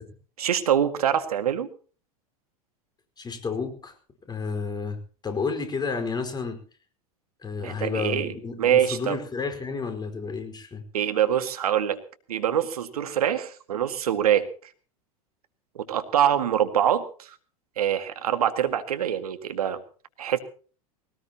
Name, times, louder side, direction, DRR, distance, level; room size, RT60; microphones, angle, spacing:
voice 1, 0.4-1.7 7.6-9.2 10.9-12.0 12.3-14.5 15.8-17.4 17.8-19.8 20.2-20.4, right 10 dB, 80° right, 10 dB, 2.0 m, -24 dB
voice 2, 3.2-3.9 4.2-6.6 7.4-10.8, left 5 dB, 20° left, 6 dB, 4.8 m, -31 dB
20.5 x 18.5 x 2.9 m, 0.39 s
hypercardioid pair, 90°, 19 cm